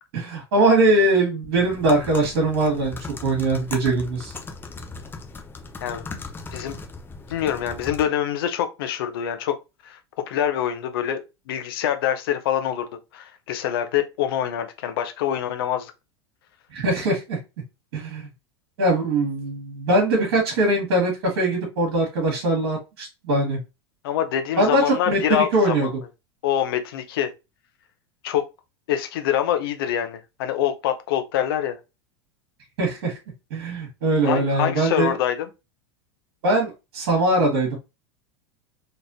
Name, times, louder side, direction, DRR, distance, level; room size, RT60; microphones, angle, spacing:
voice 1, 0.1-4.3 16.7-17.4 17.9-18.2 18.8-23.6 24.6-25.9 32.8-33.1 33.5-35.2 36.4-37.8, right 2 dB, 55° right, 2.0 m, -21 dB
sound 1, 1.5-8.1, left 3 dB, 15° left, 0.8 m, -38 dB
voice 2, 7.3-9.6 9.8-10.0 10.3-12.9 13.1-15.9 24.0-25.9 26.4-27.3 28.2-28.4 28.9-31.8 34.2-35.5, left 10 dB, 60° left, 0.8 m, -25 dB
4.1 x 3.3 x 2.8 m
figure-of-eight pair, 85°, 14 cm